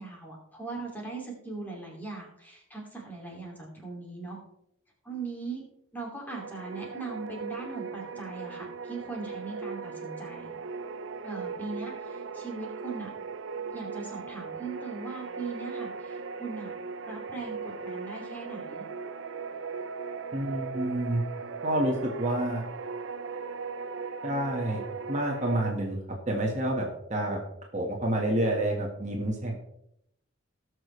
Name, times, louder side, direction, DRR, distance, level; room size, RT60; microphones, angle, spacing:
voice 1, 0.0-4.4 5.0-5.6 5.9-10.5 11.2-13.1 13.7-16.7 17.1-18.8, right 4 dB, 10° left, -2 dB, 2.6 m, -39 dB
sound 1, 6.2-25.7, right 5 dB, 65° right, 0.6 m, -38 dB
voice 2, 20.3-21.2 21.6-22.6 24.2-24.8 25.1-26.0 26.3-27.4 27.7-29.6, right 1 dB, 35° right, 0 dB, 1.6 m, -28 dB
18.5 x 6.4 x 3.3 m, 0.77 s
head